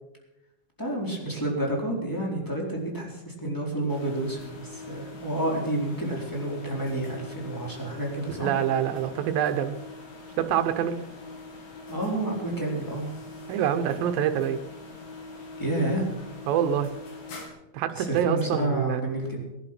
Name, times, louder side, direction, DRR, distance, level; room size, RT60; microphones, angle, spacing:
voice 1, 0.8-8.5 11.9-13.1 15.6-16.1 17.9-19.5, right 1 dB, 5° left, -2 dB, 3.8 m, -29 dB
sound 1, 3.9-17.5, left 3 dB, 90° left, 4.7 m, -43 dB
voice 2, 8.4-9.8 10.4-11.0 13.5-14.6 16.5-16.9 17.7-19.0, right 9 dB, 85° right, 8 dB, 2.7 m, -26 dB
20.0 x 11.0 x 6.0 m, 0.94 s
omnidirectional pair, 4.0 m